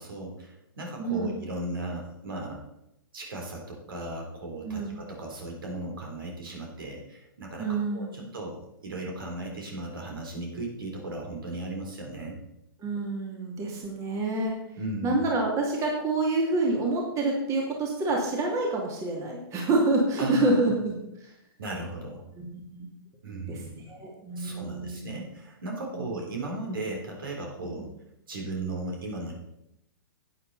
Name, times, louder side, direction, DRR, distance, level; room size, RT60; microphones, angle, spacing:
voice 1, 0.0-2.6 3.1-7.7 7.9-12.4 14.8-15.2 20.2-20.5 21.6-22.3 23.2-23.9 24.4-27.9 28.3-29.4, right 2 dB, 65° right, 1 dB, 3.7 m, -36 dB
voice 2, 1.0-1.3 4.6-4.9 7.6-8.3 12.8-14.5 15.0-21.3 22.4-22.9 23.5-25.1 25.9-26.1, right 2 dB, 25° right, -1 dB, 2.6 m, -28 dB
11.5 x 9.4 x 4.2 m, 0.84 s
figure-of-eight pair, 115°, 12 cm